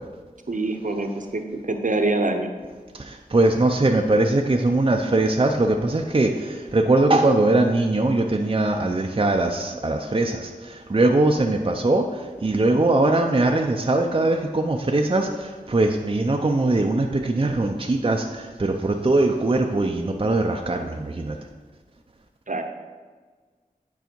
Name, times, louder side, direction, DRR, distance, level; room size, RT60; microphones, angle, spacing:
voice 1, 0.5-2.5 22.5-22.6, right 2 dB, 60° right, 5 dB, 0.8 m, -25 dB
voice 2, 3.0-12.1 12.4-21.4, right 2 dB, 35° right, 2 dB, 0.5 m, -21 dB
9.4 x 4.8 x 4.5 m, 1.5 s
wide cardioid pair, 60°, 15 cm